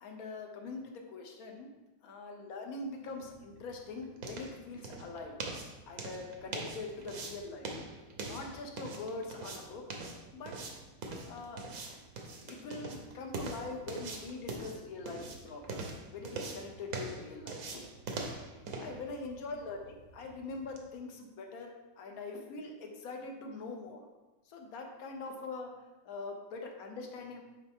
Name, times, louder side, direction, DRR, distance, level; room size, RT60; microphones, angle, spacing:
voice 1, 0.0-1.7 2.0-5.4 5.8-7.7 8.2-9.8 10.3-10.6 11.2-11.6 12.4-17.8 18.8-24.1 24.4-25.7 26.0-27.4, left 3 dB, 55° left, 2 dB, 1.1 m, -43 dB
sound 1, 3.1-20.9, right 3 dB, 55° right, 1.1 m, -43 dB
9.9 x 3.5 x 3.6 m, 1.1 s
omnidirectional pair, 2.3 m